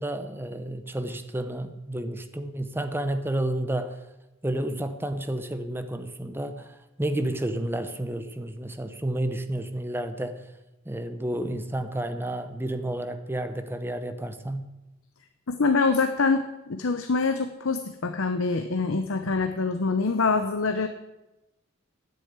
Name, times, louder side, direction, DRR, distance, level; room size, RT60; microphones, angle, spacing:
voice 1, 0.0-4.0 4.4-10.4 10.9-14.7, right 1 dB, 10° right, 9 dB, 0.8 m, -31 dB
voice 2, 15.5-20.9, left 4 dB, 75° left, 7 dB, 0.8 m, -25 dB
9.8 x 7.9 x 9.5 m, 0.99 s
head